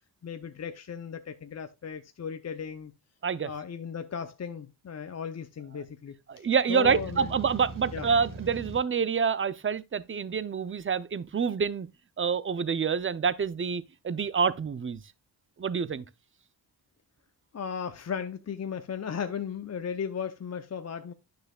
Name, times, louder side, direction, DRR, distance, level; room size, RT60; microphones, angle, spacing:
voice 1, 0.2-2.9 3.4-7.3 7.9-8.1 17.5-21.1, left 7 dB, 40° left, 0.6 m, -36 dB
voice 2, 6.3-11.9 12.2-15.0 15.6-16.0, right 6 dB, 30° right, 0.6 m, -27 dB
sound 1, 6.8-8.8, right 3 dB, 50° right, 2.3 m, -40 dB
9.6 x 6.4 x 2.3 m
cardioid pair, 65°, 42 cm